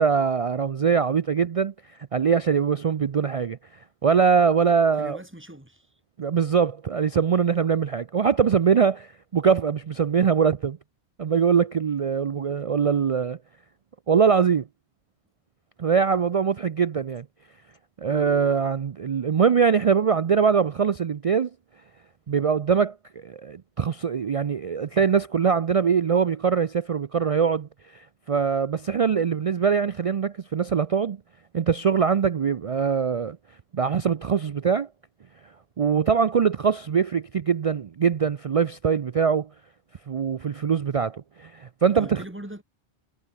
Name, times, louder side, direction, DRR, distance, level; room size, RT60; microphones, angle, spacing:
voice 1, 0.0-1.7 2.1-3.6 4.0-5.2 6.2-10.8 11.2-13.4 14.1-14.6 15.8-17.3 18.0-21.5 22.3-22.9 23.2-31.2 31.5-33.4 33.7-34.9 35.8-39.5 40.1-42.2, right 6 dB, 50° right, 0.4 m, -22 dB
voice 2, 5.0-5.9 18.1-18.2 41.9-42.6, right 1 dB, 10° right, 2.4 m, -40 dB
omnidirectional pair, 1.1 m